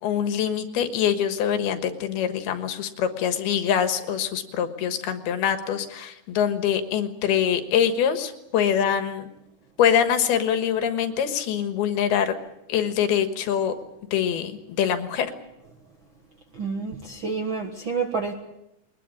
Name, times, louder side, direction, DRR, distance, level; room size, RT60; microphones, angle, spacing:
voice 1, 0.0-9.3 9.8-12.4 12.7-13.7 14.1-15.3, left 8 dB, 75° left, 8 dB, 3.4 m, -24 dB
voice 2, 16.6-18.3, right 5 dB, 55° right, 3 dB, 1.4 m, -28 dB
22.0 x 20.5 x 8.5 m, 0.87 s
omnidirectional pair, 4.6 m